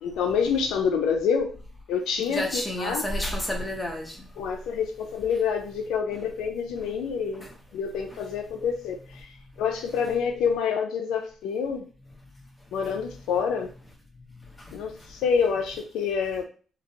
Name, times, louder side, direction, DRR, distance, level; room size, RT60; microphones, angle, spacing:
voice 1, 0.0-1.5 1.9-3.0 4.4-7.5 7.7-9.3 9.6-11.9 12.7-13.7 14.7-16.4, left 6 dB, 90° left, 0.4 m, -27 dB
voice 2, 2.3-4.3 14.7-14.8, left 1 dB, 10° left, 0.8 m, -30 dB
2.8 x 2.1 x 2.7 m
cardioid pair, 90°, 0 cm